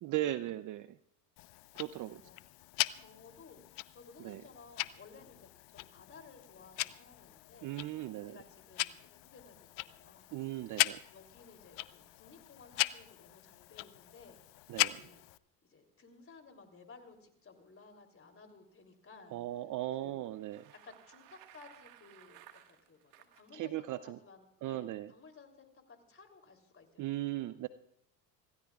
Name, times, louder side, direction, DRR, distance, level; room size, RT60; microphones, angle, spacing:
voice 1, 0.0-0.9 1.7-2.2 4.2-4.4 7.6-8.4 10.3-11.0 14.7-15.0 19.3-20.6 23.5-24.2 24.6-25.1 27.0-27.7, right 14 dB, 40° right, 15 dB, 0.6 m, -37 dB
Tick-tock, 1.4-15.4, left 21 dB, 65° left, 0.7 m, -39 dB
voice 2, 3.0-7.7 8.3-10.3 10.6-10.7 11.1-14.4 14.9-15.2 15.7-19.4 20.0-20.2 20.8-27.0 27.3-27.6, left 4 dB, 25° left, 6 dB, 3.2 m, -57 dB
Bicycle, 20.2-23.5, right 13 dB, 70° right, 1.8 m, -58 dB
25.5 x 16.5 x 2.4 m, 0.75 s
hypercardioid pair, 85°, 49 cm